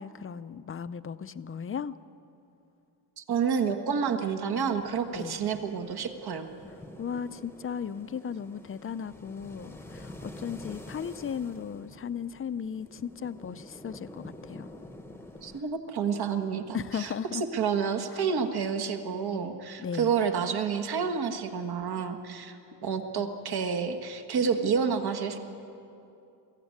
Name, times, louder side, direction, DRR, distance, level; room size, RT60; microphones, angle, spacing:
voice 1, 0.0-1.9 5.1-5.5 7.0-14.7 16.7-17.4 18.1-18.2 19.8-20.1, left 7 dB, 30° left, 14 dB, 0.5 m, -36 dB
voice 2, 3.2-6.5 15.4-17.1 17.5-25.4, right 6 dB, 60° right, 7 dB, 1.6 m, -29 dB
sound 1, 4.5-15.6, left 1 dB, 5° left, 1.0 m, -48 dB
22.5 x 15.5 x 9.6 m, 2.7 s
cardioid pair, 140°, 44 cm